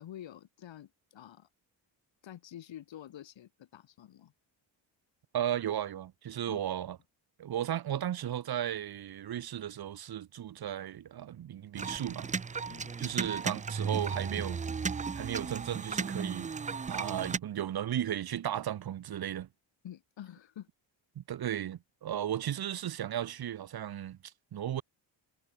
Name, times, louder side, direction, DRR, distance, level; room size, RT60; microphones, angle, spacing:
voice 1, 0.0-1.5 2.2-4.3 6.5-6.6 12.7-12.9 19.8-20.7, left 11 dB, 70° left, 4.3 m, -48 dB
voice 2, 5.3-7.0 7.4-12.3 13.0-14.6 15.1-16.5 16.9-19.5 21.2-24.2 24.5-24.8, right 11 dB, 50° right, 1.1 m, -35 dB
sound 1, 11.8-17.4, right 5 dB, 15° right, 0.4 m, -35 dB
cardioid pair, 110°, 47 cm